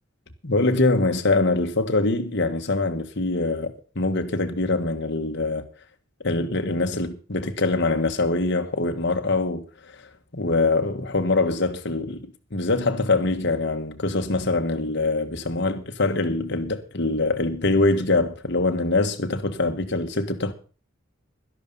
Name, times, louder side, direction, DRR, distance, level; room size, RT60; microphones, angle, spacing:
voice 1, 0.4-5.7 6.2-10.0 10.3-20.5, left 2 dB, 60° left, 1.6 m, -24 dB
12.5 x 11.5 x 5.6 m
head